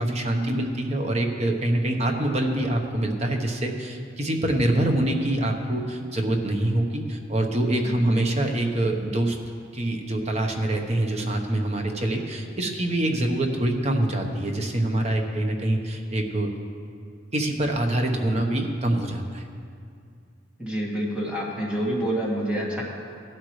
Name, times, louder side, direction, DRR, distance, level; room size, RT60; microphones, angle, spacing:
voice 1, 0.0-9.4 9.7-16.5 17.3-19.5, right 1 dB, 35° right, 3 dB, 1.0 m, -25 dB
voice 2, 20.6-22.8, right 1 dB, 5° right, -5 dB, 2.1 m, -27 dB
15.5 x 12.0 x 3.2 m, 2.3 s
head